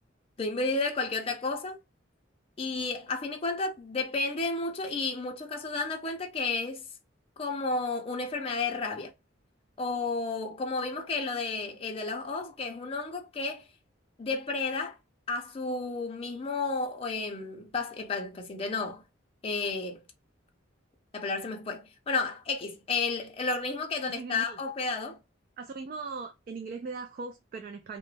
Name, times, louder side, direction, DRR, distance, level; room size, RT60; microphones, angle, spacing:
voice 1, 0.4-1.8 2.6-6.8 7.4-9.1 9.8-13.7 14.2-15.0 15.3-19.0 19.4-20.0 21.1-25.2, left 3 dB, 30° left, 0.5 m, -32 dB
voice 2, 24.0-24.6 25.6-28.0, right 4 dB, 45° right, 0.3 m, -39 dB
2.3 x 2.1 x 3.1 m
head